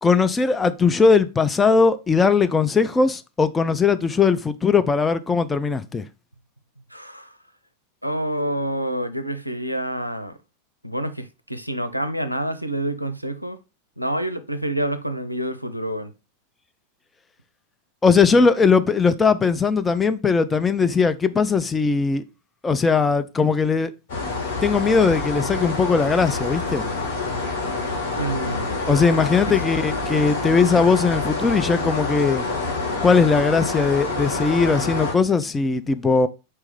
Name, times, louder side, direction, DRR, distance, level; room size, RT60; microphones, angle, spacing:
voice 1, 0.0-6.0 18.0-22.2 22.6-23.9 24.6-26.8 28.9-32.4 33.0-36.3, left 5 dB, 15° left, 0.3 m, -19 dB
voice 2, 6.8-7.3 8.0-10.4 10.8-13.6 14.0-16.1 28.1-28.7, right 1 dB, 90° right, 0.4 m, -27 dB
sound 1, 24.1-35.1, left 3 dB, 55° left, 1.4 m, -27 dB
4.4 x 3.1 x 3.5 m
figure-of-eight pair, 90°, 0 cm